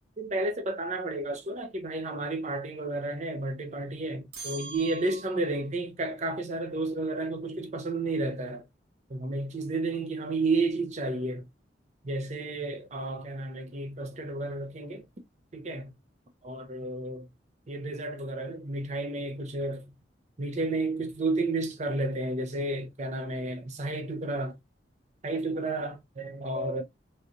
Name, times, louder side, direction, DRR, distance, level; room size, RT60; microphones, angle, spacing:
voice 1, 0.2-8.7 9.1-11.5 12.0-15.0 15.5-15.9 16.4-17.3 17.7-19.9 20.4-24.6 25.2-26.8, right 2 dB, 40° right, 0.7 m, -32 dB
sound 1, 4.3-5.7, right 3 dB, 55° right, 1.0 m, -42 dB
3.1 x 2.7 x 2.5 m
head